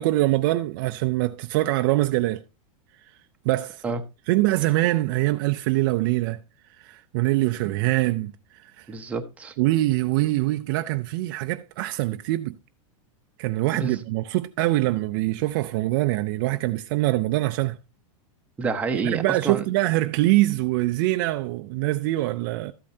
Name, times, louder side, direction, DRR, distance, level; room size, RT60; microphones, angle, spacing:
voice 1, 0.0-2.4 3.4-3.8 4.3-6.4 6.8-8.9 9.6-12.6 13.4-17.8 18.9-22.7, right 18 dB, 40° right, 0.4 m, -24 dB
voice 2, 8.9-9.5 13.7-14.0 18.6-19.6, right 4 dB, 10° right, 0.8 m, -28 dB
13.0 x 8.5 x 2.7 m
supercardioid pair, 165°, 17 cm